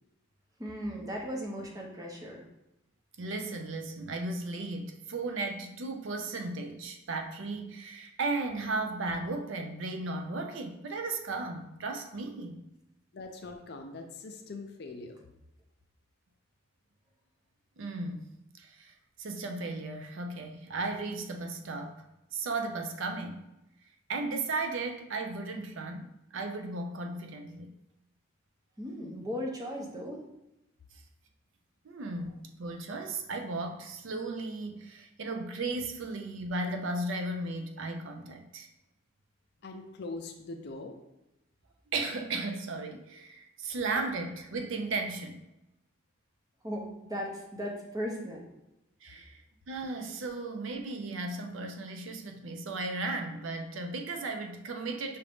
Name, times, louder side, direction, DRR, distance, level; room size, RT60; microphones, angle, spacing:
voice 1, 0.6-2.4 28.8-30.2 46.6-48.5, equal, 15° right, 0 dB, 0.6 m, -37 dB
voice 2, 3.2-12.6 17.8-18.3 18.6-22.0 22.3-23.4 24.1-27.7 31.8-38.7 41.9-45.4 49.0-49.4 49.7-55.2, right 3 dB, 65° right, 5 dB, 0.5 m, -35 dB
voice 3, 13.1-15.3 29.0-29.3 39.6-41.0, left 3 dB, 50° left, 4 dB, 0.5 m, -42 dB
5.5 x 2.5 x 3.4 m, 0.90 s
head